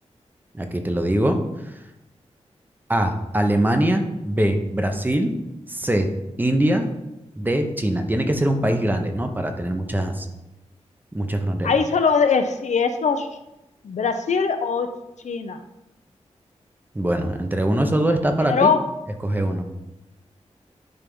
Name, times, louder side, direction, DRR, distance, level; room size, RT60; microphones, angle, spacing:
voice 1, 0.5-1.4 2.9-5.3 5.7-6.1 6.4-6.8 7.4-10.3 11.1-11.7 16.9-18.7 19.2-19.7, right 1 dB, 15° right, 5 dB, 0.8 m, -22 dB
voice 2, 11.6-13.3 13.8-14.9 15.2-15.6 18.4-18.8, left 5 dB, 75° left, 7 dB, 0.7 m, -21 dB
10.5 x 3.6 x 5.4 m, 0.95 s
wide cardioid pair, 150°, 12 cm